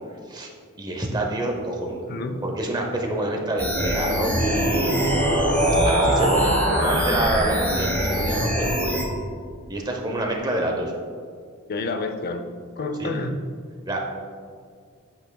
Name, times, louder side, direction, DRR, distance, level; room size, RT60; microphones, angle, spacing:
voice 1, 0.8-2.0 2.4-5.1 5.8-9.1 9.7-10.9 13.0-13.1 13.9-14.0, right 1 dB, 20° right, 1 dB, 0.8 m, -27 dB
voice 2, 2.1-2.4 4.3-4.6 11.7-12.5 12.8-13.4, left 2 dB, 45° left, 7 dB, 0.6 m, -29 dB
sound 1, 3.4-8.2, right 1 dB, 60° right, 1.5 m, -25 dB
sound 2, 3.6-9.0, equal, 10° left, 1.2 m, -25 dB
8.7 x 8.2 x 2.3 m, 2.1 s
head